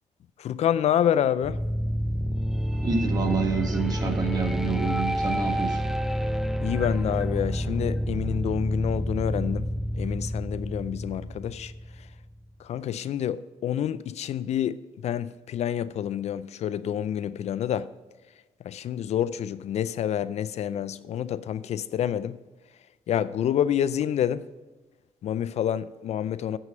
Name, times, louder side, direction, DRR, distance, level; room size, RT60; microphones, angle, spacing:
voice 1, 0.4-1.6 6.6-9.7 9.9-11.7 12.0-12.1 12.6-17.9 18.6-22.4 23.1-24.4 25.2-26.6, left 10 dB, 60° left, 0.4 m, -28 dB
sound 1, 1.4-12.3, equal, 5° right, 0.4 m, -29 dB
voice 2, 2.8-5.8, right 4 dB, 30° right, 1.5 m, -28 dB
7.6 x 6.2 x 6.5 m
cardioid pair, 110°, 12 cm